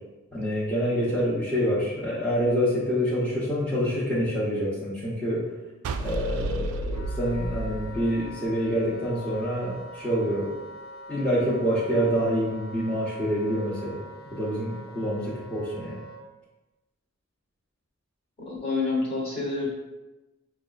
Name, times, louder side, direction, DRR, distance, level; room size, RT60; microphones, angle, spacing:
voice 1, 0.3-5.4 6.0-10.5 11.1-14.0 14.3-16.0, equal, 5° left, -10 dB, 0.7 m, -26 dB
sound 1, 5.8-9.1, right 1 dB, 85° right, 0.3 m, -32 dB
Wind instrument woodwind instrument, 6.9-16.2, equal, 85° left, 0.5 m, -44 dB
voice 2, 18.4-19.7, left 3 dB, 30° left, -5 dB, 1.1 m, -28 dB
5.9 x 2.2 x 2.4 m, 1.1 s
head